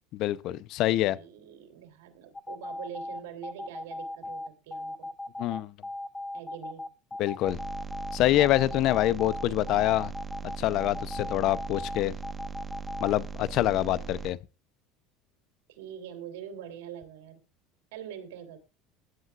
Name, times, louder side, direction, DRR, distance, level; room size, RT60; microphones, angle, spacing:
voice 1, 0.1-1.2 5.4-5.7 7.2-7.6 8.1-10.1 10.6-12.2 13.0-14.4, left 14 dB, 60° left, 0.7 m, -26 dB
voice 2, 0.8-5.1 6.3-6.9 13.8-14.1 15.7-17.4 17.9-18.6, right 9 dB, 90° right, 3.3 m, -44 dB
sound 1, 2.3-13.1, left 2 dB, 15° left, 0.9 m, -37 dB
sound 2, 7.5-14.3, right 5 dB, 20° right, 1.4 m, -39 dB
20.5 x 11.0 x 2.5 m
supercardioid pair, 110°, 0 cm